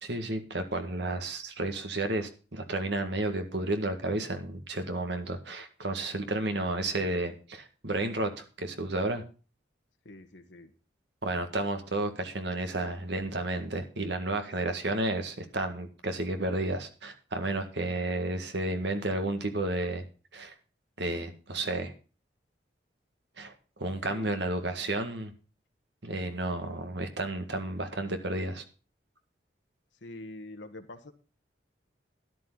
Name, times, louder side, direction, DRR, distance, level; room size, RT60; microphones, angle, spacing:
voice 1, 0.0-9.2 11.2-20.0 20.3-20.5 21.0-21.9 23.4-23.5 23.8-25.3 26.0-28.6, right 2 dB, 70° right, 7 dB, 1.9 m, -32 dB
voice 2, 10.0-10.7 24.1-24.4 30.0-31.1, left 1 dB, 80° left, 5 dB, 1.5 m, -45 dB
12.5 x 11.0 x 3.9 m, 0.36 s
head